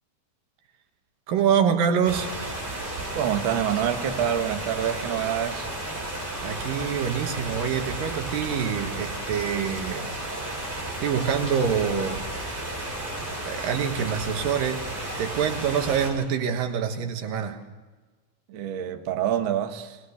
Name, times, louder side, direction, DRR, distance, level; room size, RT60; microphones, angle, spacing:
voice 1, 1.3-2.3 6.4-10.2 11.0-12.3 13.5-14.9 15.2-17.6, right 7 dB, 90° right, 5 dB, 3.2 m, -26 dB
sound 1, 2.0-16.1, right 1 dB, 30° right, 6.5 m, -33 dB
voice 2, 3.1-5.7 18.5-20.0, right 9 dB, 55° right, 6 dB, 1.4 m, -26 dB
21.0 x 20.0 x 6.5 m, 1.3 s
omnidirectional pair, 3.9 m